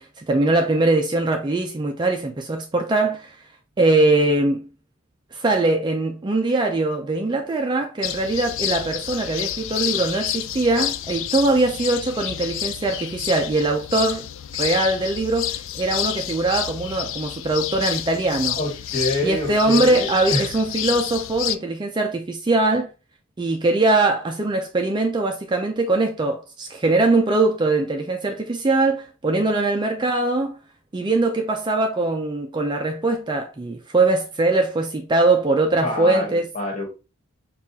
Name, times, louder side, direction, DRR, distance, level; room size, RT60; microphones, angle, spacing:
voice 1, 0.0-3.4 3.8-4.7 5.3-14.3 14.6-18.6 19.2-22.9 23.4-30.6 30.9-36.5, right 2 dB, 20° right, 0.4 m, -21 dB
sound 1, 8.0-21.5, left 12 dB, 65° left, 0.3 m, -29 dB
voice 2, 18.5-20.4 35.8-36.3 36.5-36.9, left 1 dB, 35° left, 1.6 m, -26 dB
5.4 x 2.4 x 2.7 m
head